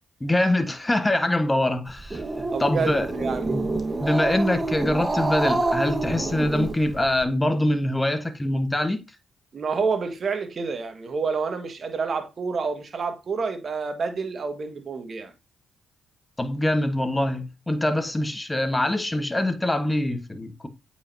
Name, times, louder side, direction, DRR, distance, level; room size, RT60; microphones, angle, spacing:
voice 1, 0.2-3.1 3.5-3.6 4.0-9.0 16.4-20.7, left 1 dB, 15° left, 1.4 m, -24 dB
Growling, 1.9-7.2, right 2 dB, 25° right, 1.3 m, -27 dB
voice 2, 2.5-3.6 9.5-15.3, right 5 dB, 50° right, 1.7 m, -28 dB
8.6 x 5.1 x 2.8 m
supercardioid pair, 50°, 0 cm